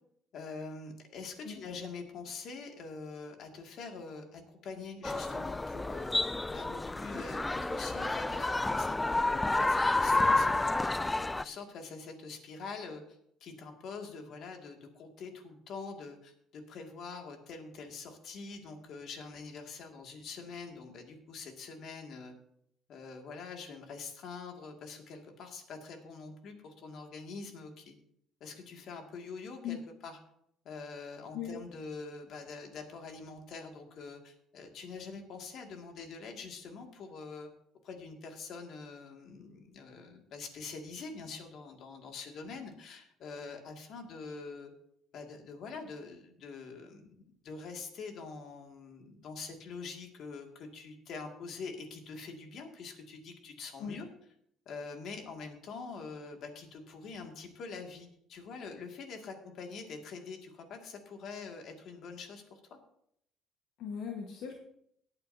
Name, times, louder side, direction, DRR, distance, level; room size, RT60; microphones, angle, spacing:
voice 1, 0.3-22.4 22.9-28.0 28.4-30.2 30.6-37.5 37.8-44.7 45.1-47.1 47.4-54.1 54.7-62.6, left 4 dB, 60° left, 3 dB, 2.1 m, -45 dB
sound 1, 5.0-11.4, left 2 dB, 15° left, 0.3 m, -30 dB
voice 2, 63.8-64.6, left 7 dB, 80° left, 1 dB, 1.4 m, -38 dB
18.0 x 8.8 x 2.7 m, 0.71 s
cardioid pair, 105°, 0 cm